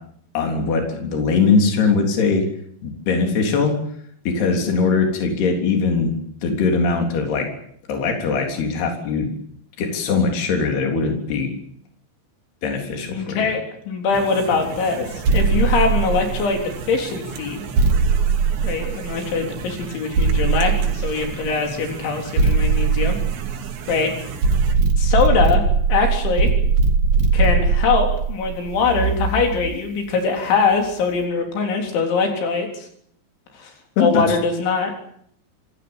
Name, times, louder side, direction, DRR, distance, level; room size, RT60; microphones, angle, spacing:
voice 1, 0.3-2.5 2.8-3.8 4.3-6.1 6.4-7.5 7.9-9.3 9.8-11.5 12.6-13.5 34.0-34.4, left 4 dB, 60° left, 3 dB, 5.6 m, -21 dB
voice 2, 13.1-17.6 18.6-23.2 23.9-24.1 25.0-25.6 25.9-26.5 27.3-32.9 33.6-33.7 34.0-35.0, left 5 dB, 85° left, 3 dB, 6.2 m, -22 dB
sound 1, 14.1-24.8, right 5 dB, 80° right, 4.6 m, -35 dB
sound 2, 15.2-16.7 17.8-19.4 20.1-21.5 22.4-24.0 24.4-29.7, right 4 dB, 50° right, 3.5 m, -19 dB
26.5 x 17.5 x 8.9 m, 0.67 s
omnidirectional pair, 5.2 m